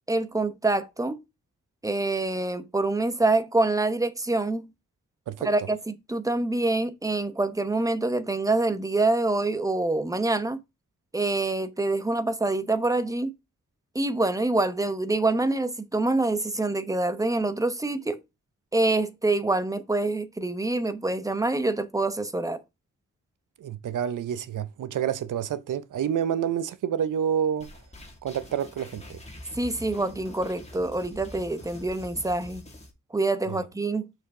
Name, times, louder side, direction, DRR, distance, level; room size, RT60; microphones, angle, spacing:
voice 1, 0.1-1.2 1.8-4.7 5.4-10.6 11.1-13.3 13.9-18.2 18.7-22.6 29.5-32.6 33.1-34.1, right 2 dB, 10° right, 0.9 m, -26 dB
voice 2, 23.6-27.7 28.2-29.2 33.5-33.6, right 9 dB, 85° right, 0.8 m, -28 dB
sound 1, 27.6-32.9, left 1 dB, 20° left, 2.4 m, -45 dB
6.4 x 6.2 x 3.7 m
wide cardioid pair, 140°, 30 cm